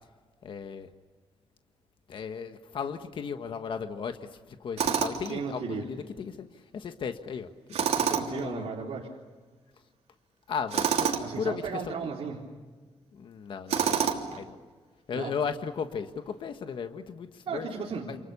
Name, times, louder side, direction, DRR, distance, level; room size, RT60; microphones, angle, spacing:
voice 1, 0.4-0.9 2.1-6.5 6.7-7.5 7.8-8.7 10.5-12.0 13.1-14.6 15.1-17.7 18.1-18.2, left 6 dB, 50° left, 7 dB, 1.5 m, -36 dB
Tools, 4.8-5.3 7.7-8.5 10.7-11.3 13.7-14.4, right 8 dB, 85° right, 3.2 m, -27 dB
voice 2, 5.3-5.8 8.1-9.1 11.2-12.4 14.3-14.4 15.1-15.3 17.5-18.1, right 5 dB, 60° right, -3 dB, 3.8 m, -35 dB
29.0 x 28.5 x 7.0 m, 1.4 s
wide cardioid pair, 160°, 11 cm